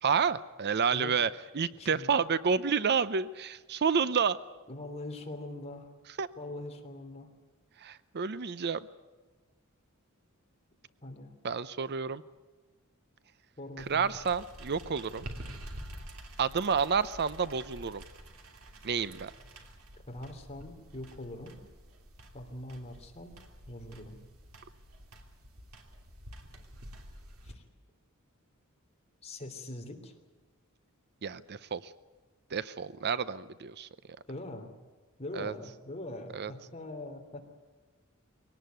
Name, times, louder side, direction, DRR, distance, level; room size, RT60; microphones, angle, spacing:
voice 1, 0.0-4.4 6.2-6.3 7.8-8.8 11.4-12.2 13.8-15.3 16.4-18.0 18.8-19.3 31.2-31.9 32.5-33.9 35.4-35.5 36.3-36.5, right 6 dB, 50° right, 16 dB, 0.6 m, -30 dB
voice 2, 1.8-2.2 4.7-5.9 6.4-7.3 11.0-11.3 13.6-14.1 20.1-21.6 22.3-23.3 23.7-24.2 27.4-27.6 29.2-30.1 34.3-34.7 35.2-37.4, left 1 dB, 30° left, 4 dB, 3.1 m, -42 dB
sound 1, 13.8-27.5, right 1 dB, 70° right, 3.0 m, -48 dB
22.5 x 18.0 x 9.3 m, 1.3 s
head